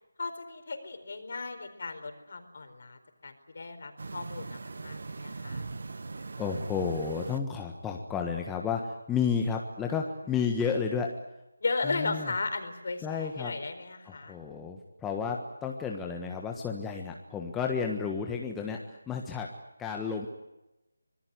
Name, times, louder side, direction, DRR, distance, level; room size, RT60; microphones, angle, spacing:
voice 1, 0.2-5.7 10.2-10.4 11.6-14.4, left 3 dB, 50° left, 8 dB, 4.4 m, -36 dB
sound 1, 4.0-7.4, right 3 dB, 55° right, 1.4 m, -40 dB
voice 2, 6.4-11.1 11.8-12.3 13.0-13.5 14.0-19.5 19.8-20.3, left 6 dB, 5° left, 1 dB, 1.5 m, -32 dB
25.5 x 20.5 x 9.7 m, 0.97 s
figure-of-eight pair, 160°, 0 cm